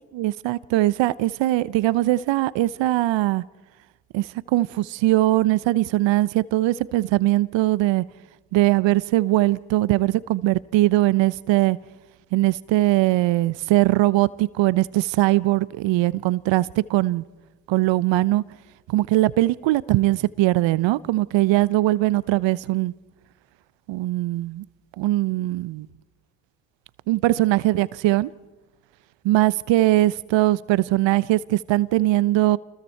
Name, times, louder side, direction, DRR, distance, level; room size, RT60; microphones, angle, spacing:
voice 1, 0.1-3.4 4.1-8.0 8.5-11.8 12.3-17.2 17.7-18.4 18.9-22.9 23.9-24.6 25.0-25.9 27.1-28.3 29.2-32.6, right 16 dB, 65° right, 0.8 m, -21 dB
28.5 x 20.5 x 4.5 m
hypercardioid pair, 50°, 48 cm